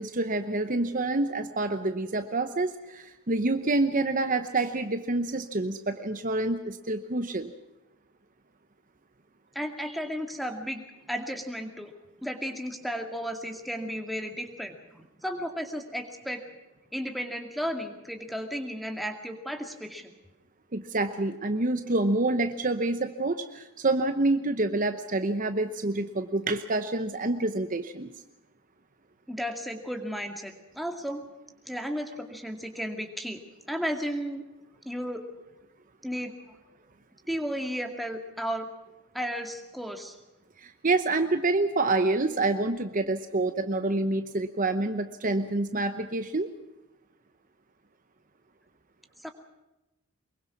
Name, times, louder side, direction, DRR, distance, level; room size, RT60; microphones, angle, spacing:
voice 1, 0.0-7.5 20.7-28.1 40.6-46.5, right 2 dB, 35° right, 9 dB, 0.9 m, -27 dB
voice 2, 9.5-11.9 12.2-16.4 16.9-20.1 29.3-31.2 31.7-33.4 33.7-34.4 34.8-35.2 36.0-36.3 37.3-38.7 39.1-40.2 49.2-49.3, equal, ahead, 5 dB, 2.2 m, -34 dB
24.0 x 22.5 x 6.0 m, 0.99 s
head